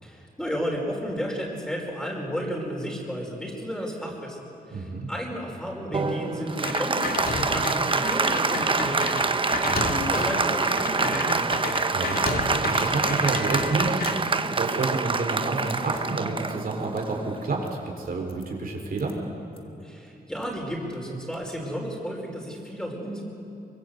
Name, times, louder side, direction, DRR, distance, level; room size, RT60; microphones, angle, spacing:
voice 1, 0.0-4.4 4.7-9.3 9.7-11.7 19.8-23.2, equal, 5° left, -1 dB, 5.1 m, -33 dB
voice 2, 4.7-5.1 9.6-9.9 11.9-19.2, right 3 dB, 65° right, 0 dB, 4.3 m, -29 dB
Applause, 5.9-17.8, right 4 dB, 30° right, 0.9 m, -26 dB
sound 1, 6.5-6.6 7.0-7.2 7.6-7.7 8.1-8.2 8.8-9.8 10.3-10.5 11.1-11.4 11.7-13.5 13.9-14.2 14.7-15.0 15.3-15.4 15.7-16.0 16.8-17.1 17.6-17.7 18.3-18.5 19.0-19.1 19.5-19.6 20.1-20.6 20.9-21.5, left 3 dB, 35° left, 2.3 m, -48 dB
sound 2, 6.6-7.7 8.0-14.1, left 3 dB, 70° left, 2.4 m, -31 dB
24.0 x 24.0 x 8.1 m, 3.0 s
wide cardioid pair, 115°, 16 cm